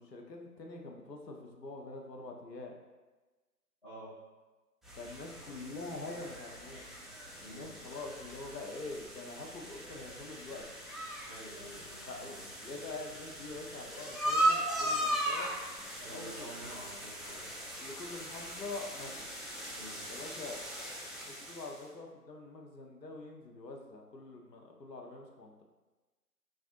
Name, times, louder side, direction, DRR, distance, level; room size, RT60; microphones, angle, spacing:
voice 1, 0.0-2.7 5.0-6.8 7.4-10.6 12.0-15.5 16.1-16.5 17.8-19.3 20.1-21.0 21.2-25.6, left 3 dB, 90° left, 1 dB, 0.8 m, -45 dB
sound 1, 4.8-21.8, right 1 dB, ahead, 0.3 m, -38 dB
voice 2, 7.4-7.8 11.3-12.4 16.0-17.4 19.7-20.0, right 1 dB, 30° left, -17 dB, 1.4 m, -49 dB
3.6 x 2.5 x 2.5 m, 1.2 s
figure-of-eight pair, 180°, 48 cm